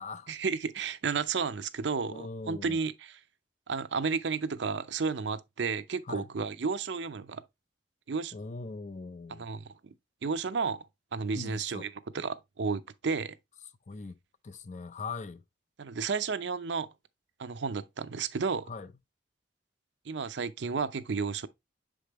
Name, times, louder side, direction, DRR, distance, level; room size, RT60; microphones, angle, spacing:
voice 1, 0.3-3.2 3.7-7.4 8.1-8.3 9.4-9.9 10.2-10.9 11.1-11.9 12.1-13.4 15.8-16.9 17.4-18.7 20.1-21.5, right 5 dB, 65° right, 0.5 m, -32 dB
voice 2, 2.1-2.8 6.0-6.3 8.3-9.4 11.3-11.9 13.9-14.2 14.4-15.4 18.7-18.9, left 4 dB, 35° left, 0.4 m, -41 dB
6.7 x 5.0 x 3.0 m
head